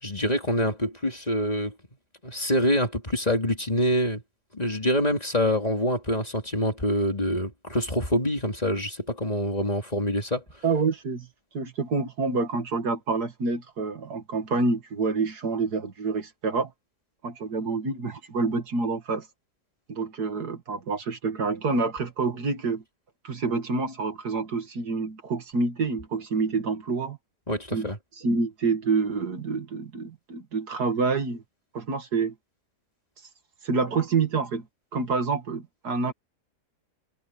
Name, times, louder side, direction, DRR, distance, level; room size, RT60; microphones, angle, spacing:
voice 1, 0.0-1.7 2.2-4.2 4.5-10.4 27.5-28.0, equal, 25° left, 2.8 m, -25 dB
voice 2, 10.6-11.3 11.5-16.7 17.2-19.3 19.9-22.8 23.2-27.2 27.7-31.4 31.7-32.3 33.6-34.7 34.9-36.1, right 4 dB, 70° right, 2.6 m, -27 dB
omnidirectional pair, 1.7 m